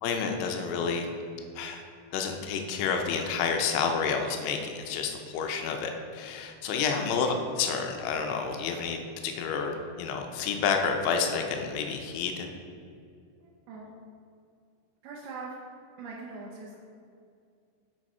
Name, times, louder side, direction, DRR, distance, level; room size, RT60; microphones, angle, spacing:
voice 1, 0.0-1.1 1.6-1.8 2.1-12.5, left 5 dB, 85° left, 4 dB, 2.7 m, -29 dB
voice 2, 13.4-13.9 15.0-15.6 16.0-16.8, right 4 dB, 80° right, -3 dB, 2.6 m, -42 dB
6.8 x 6.3 x 4.3 m, 2.3 s
omnidirectional pair, 4.7 m